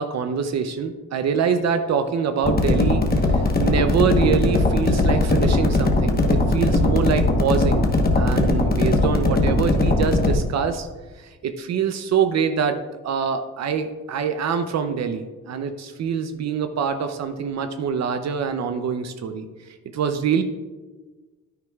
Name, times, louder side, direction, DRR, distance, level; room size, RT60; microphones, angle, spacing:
voice 1, 0.0-7.9 8.1-10.9 11.2-12.8 13.0-20.4, right 6 dB, 60° right, 8 dB, 0.7 m, -25 dB
sound 1, 2.4-10.3, left 2 dB, 30° left, 1.2 m, -19 dB
9.7 x 9.4 x 2.4 m, 1.3 s
cardioid pair, 90°, 30 cm